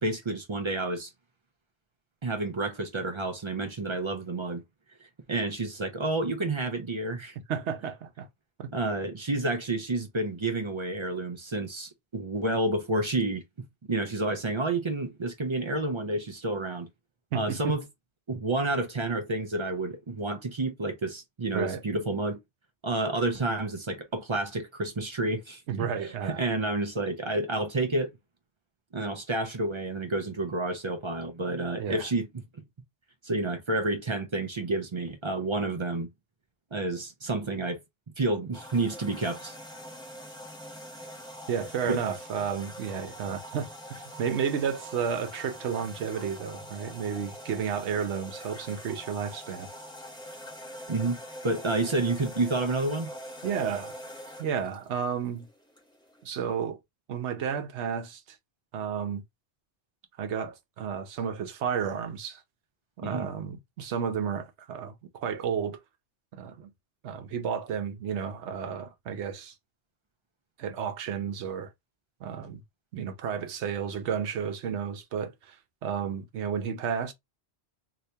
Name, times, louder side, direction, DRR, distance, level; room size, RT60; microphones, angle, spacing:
voice 1, 0.0-1.1 2.2-4.6 5.3-7.4 8.7-16.9 17.3-17.8 18.3-22.4 22.8-28.1 28.9-32.4 33.2-36.1 36.7-37.8 38.2-39.6 41.9-42.0 50.9-53.1 63.0-63.3, right 2 dB, 40° right, 0.4 m, -30 dB
voice 2, 7.5-8.3 8.6-8.7 17.3-17.7 21.5-21.8 25.7-26.4 31.8-32.1 41.5-49.7 53.4-54.0 54.4-55.5 56.2-56.8 57.1-58.2 58.7-59.2 60.2-62.4 63.0-65.8 66.3-66.7 67.0-69.5 70.6-71.7 72.2-72.6 72.9-75.6 75.8-77.1, right 7 dB, 90° right, 1.0 m, -32 dB
sound 1, 38.5-56.3, equal, 5° left, 0.7 m, -44 dB
2.8 x 2.7 x 3.2 m
omnidirectional pair, 1.1 m